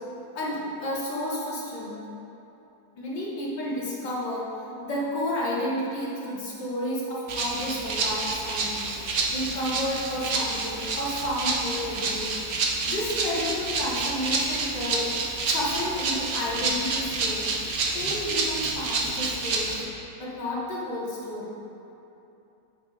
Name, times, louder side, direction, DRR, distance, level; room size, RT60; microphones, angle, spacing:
voice 1, 0.4-2.0 3.0-4.5 4.8-8.9 9.3-12.3 12.8-15.1 15.5-17.5 17.9-19.8 20.2-21.5, left 1 dB, 75° left, -6 dB, 2.1 m, -31 dB
Rattle (instrument), 7.3-19.8, right 3 dB, 55° right, 0.9 m, -29 dB
9.2 x 7.2 x 2.5 m, 2.8 s
omnidirectional pair, 1.9 m